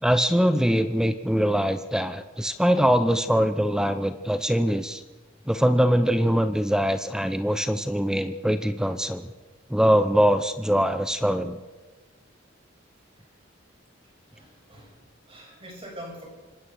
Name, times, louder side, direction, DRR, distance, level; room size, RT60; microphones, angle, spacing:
voice 1, 0.0-5.0 5.5-9.3 9.7-11.6, equal, 5° right, 10 dB, 0.8 m, -22 dB
voice 2, 14.3-16.2, equal, 25° right, 1 dB, 7.7 m, -44 dB
26.0 x 20.0 x 6.5 m, 1.3 s
head